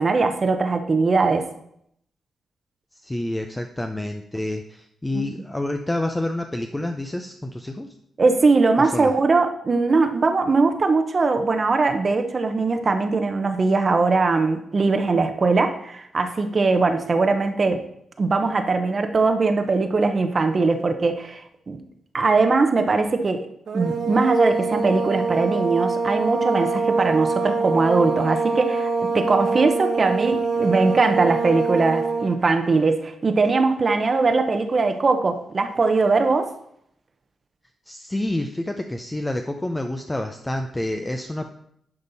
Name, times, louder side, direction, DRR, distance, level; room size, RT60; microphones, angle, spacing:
voice 1, 0.0-1.5 5.1-5.3 8.2-17.8 18.2-21.8 22.1-23.5 23.7-36.5, right 3 dB, 35° right, 7 dB, 0.9 m, -21 dB
voice 2, 3.0-7.9 8.9-9.1 37.9-41.5, left 1 dB, 10° left, 5 dB, 0.6 m, -28 dB
sound 1, 23.7-32.4, right 4 dB, 70° right, 1.0 m, -24 dB
11.0 x 5.4 x 4.1 m, 0.71 s
cardioid pair, 115°, 0 cm